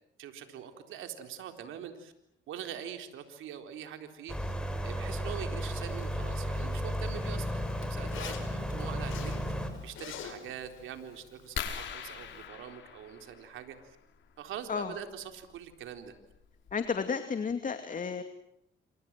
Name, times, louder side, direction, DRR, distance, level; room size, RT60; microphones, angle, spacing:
voice 1, 0.2-2.1 2.5-4.3 4.8-9.3 9.8-14.0 14.4-16.1, right 9 dB, 85° right, 6 dB, 4.0 m, -43 dB
sound 1, 4.3-9.7, equal, 5° left, 6.1 m, -34 dB
Zipper (clothing), 5.8-12.5, left 9 dB, 85° left, 5.2 m, -49 dB
sound 2, 11.6-13.9 15.5-15.7 16.3-16.4 16.7-16.9, left 8 dB, 70° left, 4.6 m, -40 dB
voice 2, 16.7-18.2, left 5 dB, 40° left, 8 dB, 2.6 m, -32 dB
29.5 x 26.5 x 7.6 m, 0.76 s
cardioid pair, 90°, 20 cm